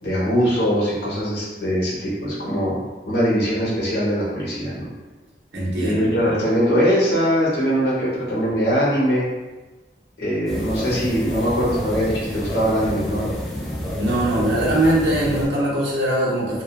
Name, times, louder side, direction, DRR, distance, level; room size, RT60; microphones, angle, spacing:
voice 1, 0.0-4.9 5.7-9.2 10.2-13.2, equal, 70° left, -7 dB, 0.9 m, -21 dB
voice 2, 5.5-5.9 14.0-16.6, right 1 dB, 80° right, -5 dB, 0.7 m, -21 dB
sound 1, 10.5-15.5, left 1 dB, ahead, 0.4 m, -28 dB
2.4 x 2.3 x 2.3 m, 1.2 s
head